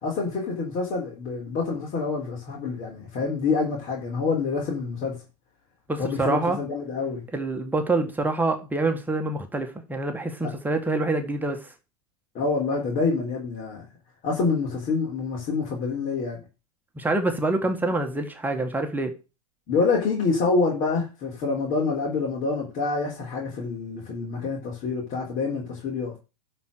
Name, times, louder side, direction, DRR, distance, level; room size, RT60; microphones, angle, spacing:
voice 1, 0.0-5.2 6.0-7.2 10.4-10.5 12.4-13.8 14.2-16.4 19.7-26.2, left 4 dB, 40° left, 3.5 m, -27 dB
voice 2, 5.9-6.6 7.3-11.7 17.0-19.1, right 2 dB, 10° right, 1.7 m, -26 dB
11.5 x 4.5 x 6.6 m
hypercardioid pair, 100°, 19 cm